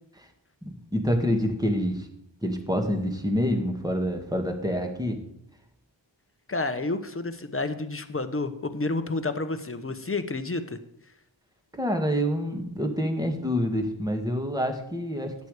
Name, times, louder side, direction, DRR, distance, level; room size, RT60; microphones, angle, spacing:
voice 1, 0.6-2.1 2.4-5.2 11.7-15.3, equal, 10° right, 4 dB, 1.9 m, -27 dB
voice 2, 6.5-10.8, left 3 dB, 30° left, 9 dB, 1.0 m, -30 dB
11.0 x 8.4 x 5.0 m, 0.74 s
wide cardioid pair, 50°, 45 cm